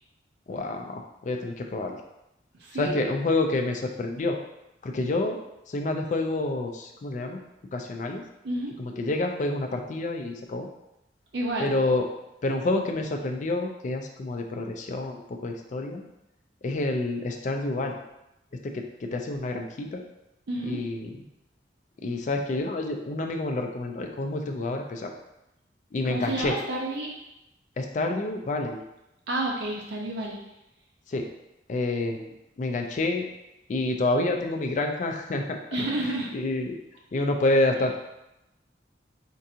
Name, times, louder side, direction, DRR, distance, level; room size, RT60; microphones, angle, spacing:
voice 1, 0.5-2.0 2.8-4.4 4.8-5.4 5.7-7.4 7.7-8.2 8.8-10.7 11.6-12.0 12.4-16.0 16.6-17.9 18.6-20.0 20.6-21.2 22.0-25.1 25.9-26.5 27.8-28.8 31.1-31.3 31.7-33.3 33.7-35.6 36.3-36.8 37.1-38.0, left 2 dB, 45° left, 4 dB, 0.4 m, -28 dB
voice 2, 2.6-3.0 8.4-8.7 11.3-11.7 20.5-20.8 26.0-27.1 29.3-30.4 35.7-36.3, right 1 dB, 65° right, -1 dB, 0.5 m, -30 dB
4.5 x 2.5 x 2.7 m, 0.90 s
head